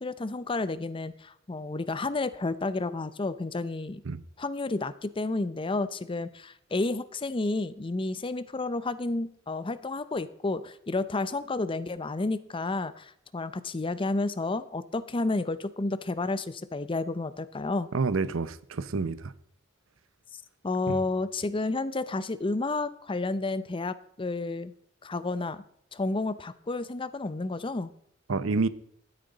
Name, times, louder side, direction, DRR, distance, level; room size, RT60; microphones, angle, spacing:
voice 1, 0.0-4.0 4.4-17.9 20.6-24.7 25.0-25.6 25.9-27.9, left 2 dB, 25° left, 0.6 m, -31 dB
voice 2, 17.9-19.3 20.9-21.0 28.3-28.7, right 4 dB, 90° right, 0.7 m, -28 dB
12.0 x 10.0 x 4.0 m
head